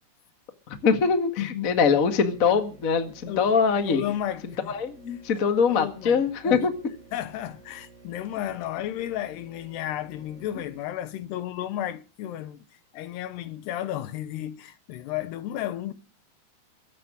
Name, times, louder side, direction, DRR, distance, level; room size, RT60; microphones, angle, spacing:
voice 1, 0.7-4.0 4.4-6.7 11.4-11.5, left 5 dB, 50° left, 0.9 m, -23 dB
voice 2, 1.4-1.7 3.3-4.7 5.7-6.6 7.1-12.6 12.9-15.9, left 12 dB, 85° left, 3.2 m, -33 dB
sound 1, 1.6-10.8, right 3 dB, 5° right, 6.2 m, -52 dB
23.0 x 8.7 x 6.3 m
omnidirectional pair, 4.7 m